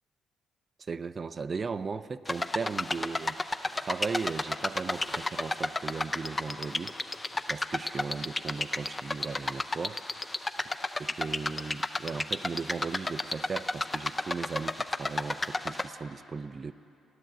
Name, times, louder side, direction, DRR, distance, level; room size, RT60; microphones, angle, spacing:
voice 1, 0.8-3.4 3.8-6.9 7.5-10.3 11.0-16.7, right 5 dB, 40° right, 14 dB, 0.4 m, -37 dB
sound 1, 2.3-15.9, left 2 dB, 20° left, 0.5 m, -32 dB
16.0 x 10.5 x 7.6 m, 2.8 s
cardioid pair, 90°, 0 cm